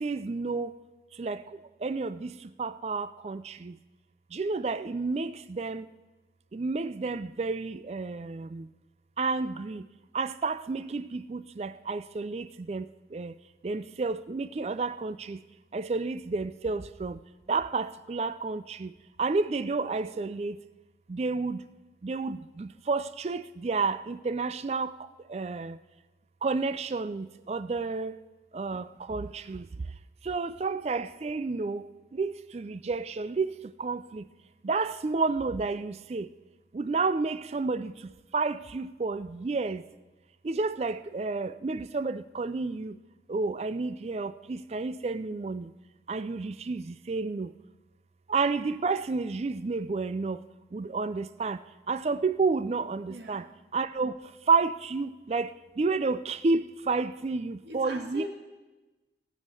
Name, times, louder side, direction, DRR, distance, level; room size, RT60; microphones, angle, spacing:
voice 1, 0.0-0.7 1.2-1.4 1.8-3.7 4.3-5.9 6.5-8.7 9.2-9.8 10.1-12.9 13.1-13.3 13.6-15.4 15.7-17.2 17.5-18.9 19.2-20.6 21.1-21.6 22.0-24.9 25.3-25.8 26.4-28.2 28.5-29.7 30.2-31.8 32.1-34.2 34.6-36.3 36.7-37.9 38.3-39.8 40.4-43.0 43.3-45.7 46.1-47.5 48.3-50.4 50.7-51.6 51.9-53.5 53.7-54.1 54.5-58.2, right 4 dB, 35° right, 0.3 m, -30 dB
voice 2, 53.1-53.4 57.6-58.3, equal, 80° right, 2.0 m, -40 dB
17.5 x 6.4 x 6.8 m
head